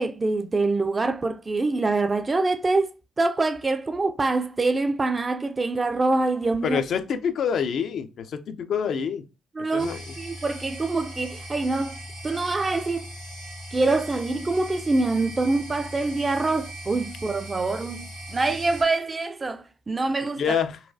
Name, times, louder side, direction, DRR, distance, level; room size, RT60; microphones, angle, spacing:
voice 1, 0.0-2.9 3.2-6.8 9.6-9.9 10.2-12.0 12.2-13.1 13.7-20.6, right 3 dB, 30° right, 0.4 m, -25 dB
voice 2, 6.6-9.2 9.6-10.0 20.4-20.8, left 7 dB, 60° left, 0.4 m, -27 dB
sound 1, 9.8-18.8, equal, 80° right, 1.6 m, -39 dB
3.9 x 2.3 x 2.7 m
hypercardioid pair, 45°, 0 cm